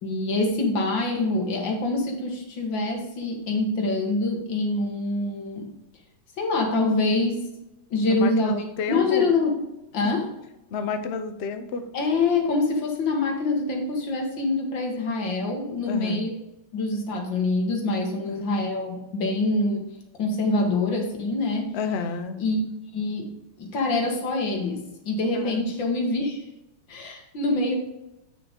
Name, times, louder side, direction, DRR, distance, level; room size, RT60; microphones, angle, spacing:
voice 1, 0.0-5.7 6.4-7.5 7.9-8.5 8.9-9.6 9.9-10.3 11.9-16.3 16.7-19.9 20.2-21.8 22.4-22.6 22.9-23.3 23.6-26.4 26.9-27.8, left 2 dB, 65° left, 2 dB, 2.2 m, -25 dB
voice 2, 8.1-9.2 10.0-10.1 10.7-11.8 15.8-16.3 18.2-18.5 21.7-22.4 25.3-25.6, left 5 dB, 85° left, 7 dB, 0.5 m, -31 dB
8.7 x 6.3 x 3.6 m, 0.92 s
omnidirectional pair, 2.2 m